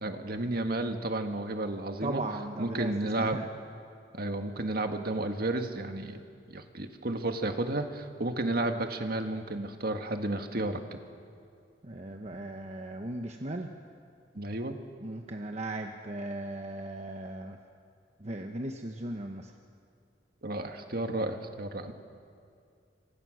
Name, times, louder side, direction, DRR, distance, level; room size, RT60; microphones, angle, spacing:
voice 1, 0.0-2.2 2.6-3.4 4.1-6.2 6.5-11.0 14.4-14.8 20.4-21.9, right 2 dB, 55° right, 5 dB, 1.8 m, -32 dB
voice 2, 2.0-3.5 11.8-13.7 15.0-17.6 18.2-19.5, right 1 dB, 40° right, 3 dB, 1.1 m, -37 dB
27.5 x 25.5 x 6.5 m, 2.3 s
head